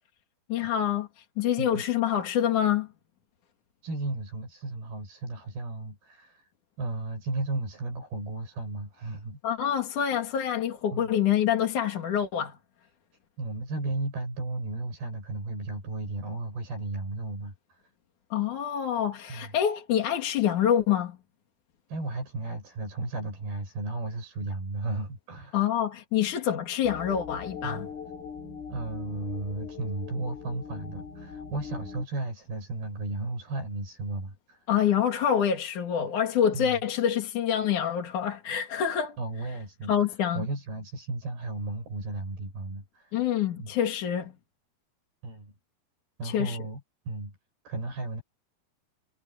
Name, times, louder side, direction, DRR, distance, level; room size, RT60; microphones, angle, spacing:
voice 1, 0.5-2.9 9.4-12.6 18.3-21.2 25.5-27.9 34.7-39.2 39.9-40.4 43.1-44.3 46.2-46.6, left 9 dB, 55° left, 3.5 m, -26 dB
voice 2, 3.8-6.5 6.8-9.4 10.9-11.1 13.4-17.8 19.3-19.5 21.9-25.7 26.2-26.3 27.6-27.9 28.7-34.7 36.5-36.8 39.2-39.9 40.3-43.2 43.6-43.7 45.2-45.5 46.2-46.8 47.1-47.4 47.6-48.2, right 2 dB, 80° right, 9.3 m, -34 dB
sound 1, 26.8-32.0, left 6 dB, 75° left, 5.7 m, -41 dB
omnidirectional pair, 4.4 m